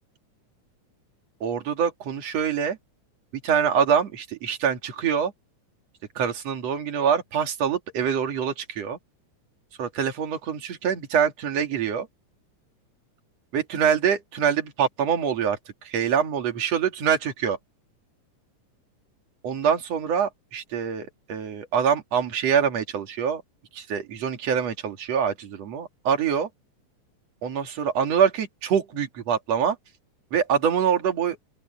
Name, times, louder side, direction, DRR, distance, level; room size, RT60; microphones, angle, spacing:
voice 1, 1.4-2.8 3.4-5.3 6.2-9.0 9.8-12.1 13.5-15.6 15.9-17.6 19.4-23.4 23.7-26.5 27.4-29.8 30.3-31.4, right 7 dB, 55° right, 3.3 m, -25 dB
open air
omnidirectional pair, 3.6 m